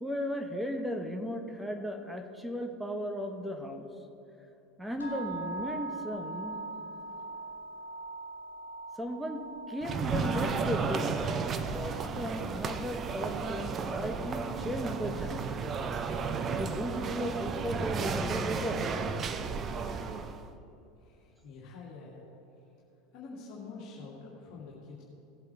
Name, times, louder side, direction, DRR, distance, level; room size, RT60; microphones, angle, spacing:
voice 1, 0.0-3.9 4.8-6.6 9.0-9.4 9.7-11.3 11.7-15.7 16.5-18.8, equal, 5° right, 5 dB, 1.1 m, -36 dB
sound 1, 5.0-15.1, right 3 dB, 85° left, 1.5 m, -43 dB
sound 2, 9.8-20.5, right 5 dB, 30° right, 0.7 m, -33 dB
voice 2, 21.0-22.2 23.1-25.0, left 4 dB, 50° left, -5 dB, 2.3 m, -46 dB
18.0 x 8.1 x 3.5 m, 3.0 s
figure-of-eight pair, 80°, 0 cm